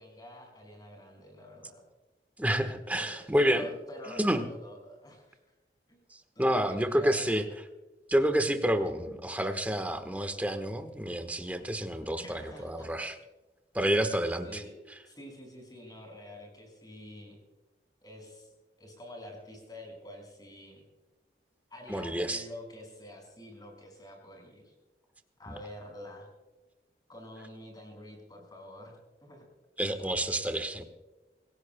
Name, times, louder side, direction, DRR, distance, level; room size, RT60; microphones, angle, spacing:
voice 1, 0.0-1.8 2.9-3.1 3.4-5.4 5.9-6.0 6.4-7.4 12.2-13.1 13.8-14.0 14.4-14.7 15.1-17.4 18.0-18.5 18.8-20.8 21.7-24.7 25.4-26.3 27.1-29.5, left 1 dB, 25° left, 1 dB, 5.4 m, -47 dB
voice 2, 2.4-3.7 4.1-4.4 6.1-7.4 8.1-13.2 13.7-14.6 21.9-22.4 29.8-30.8, equal, 10° right, 7 dB, 1.2 m, -29 dB
25.0 x 16.5 x 2.2 m, 1.2 s
head